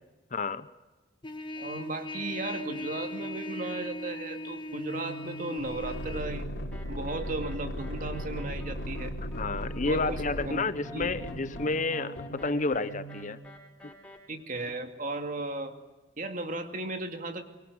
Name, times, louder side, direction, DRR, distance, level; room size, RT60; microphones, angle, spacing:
voice 1, 0.3-0.7 9.4-12.1 12.4-13.4 13.8-13.9, left 3 dB, 45° left, 14 dB, 0.9 m, -30 dB
Trumpet, 1.2-6.3, left 1 dB, 25° left, 2.0 m, -38 dB
voice 2, 1.6-6.5 6.9-9.1 9.8-10.7 10.9-11.1 14.3-15.7 16.2-17.4, right 2 dB, 50° right, 6 dB, 2.4 m, -36 dB
sound 1, 4.8-13.4, equal, 80° left, 3.3 m, -38 dB
sound 2, 6.7-14.2, left 2 dB, 10° left, 5.1 m, -49 dB
24.0 x 23.5 x 8.0 m, 1.2 s
head